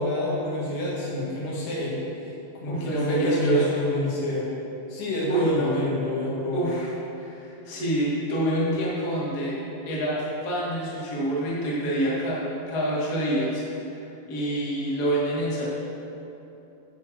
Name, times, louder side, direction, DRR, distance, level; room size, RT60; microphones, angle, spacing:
voice 1, 0.0-2.0 2.2-2.3 2.6-4.5 4.9-6.7, left 1 dB, 85° left, -6 dB, 4.1 m, -27 dB
voice 2, 2.7-3.6 5.3-5.8 6.5-6.9 7.2-9.6 9.8-13.6 14.3-15.7, right 1 dB, 35° left, -6 dB, 1.4 m, -26 dB
10.0 x 4.5 x 7.5 m, 2.9 s
omnidirectional pair, 4.6 m